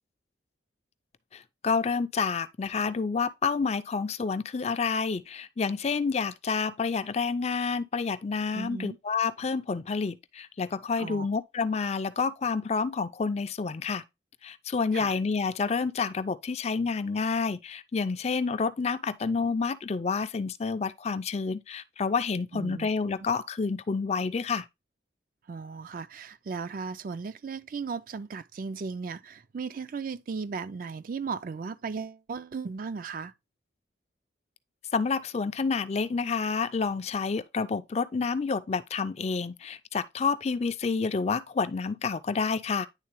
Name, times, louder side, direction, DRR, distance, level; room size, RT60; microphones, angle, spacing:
voice 1, 1.3-14.0 14.4-24.6 34.9-42.9, left 5 dB, 35° left, 0.4 m, -29 dB
voice 2, 8.5-9.0 11.0-11.3 14.9-15.2 22.5-22.9 25.5-33.3, right 5 dB, 45° right, 0.4 m, -36 dB
9.7 x 3.7 x 3.0 m
head